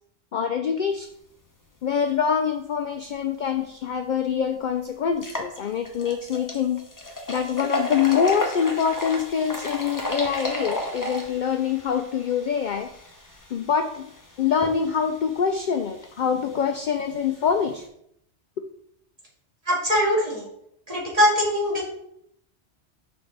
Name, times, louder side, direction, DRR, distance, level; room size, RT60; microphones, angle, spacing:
voice 1, 0.3-1.1 1.8-12.9 13.5-14.0 14.4-17.8, left 7 dB, 60° left, 7 dB, 0.5 m, -25 dB
sound 1, 3.8-3.9 4.4-4.5 5.1-17.8, left 1 dB, 20° left, 1.0 m, -35 dB
voice 2, 19.7-20.5 20.9-21.9, equal, 30° right, -5 dB, 2.4 m, -22 dB
5.9 x 5.7 x 3.9 m, 0.72 s
omnidirectional pair, 1.2 m